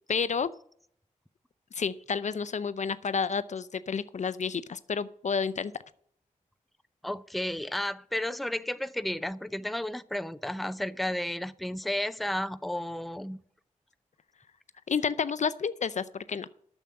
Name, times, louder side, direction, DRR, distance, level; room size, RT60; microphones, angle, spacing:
voice 1, 0.1-0.5 1.8-5.7 14.9-16.5, left 6 dB, 60° left, 0.5 m, -30 dB
voice 2, 7.0-13.4, left 1 dB, ahead, 0.6 m, -32 dB
9.0 x 7.2 x 7.5 m
cardioid pair, 45°, 14 cm